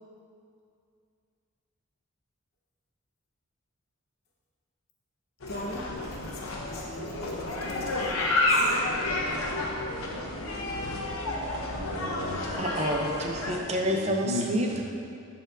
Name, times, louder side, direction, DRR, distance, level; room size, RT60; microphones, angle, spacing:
sound 1, 5.4-13.6, left 2 dB, 85° left, 0.8 m, -30 dB
voice 1, 5.5-8.8 13.3-13.4, left 1 dB, 50° left, -3 dB, 1.0 m, -41 dB
voice 2, 11.7-12.6 13.7-14.8, left 1 dB, 70° right, 2 dB, 0.7 m, -36 dB
voice 3, 12.6-14.7, equal, 30° right, 1 dB, 0.5 m, -28 dB
11.0 x 4.3 x 2.6 m, 2.4 s
head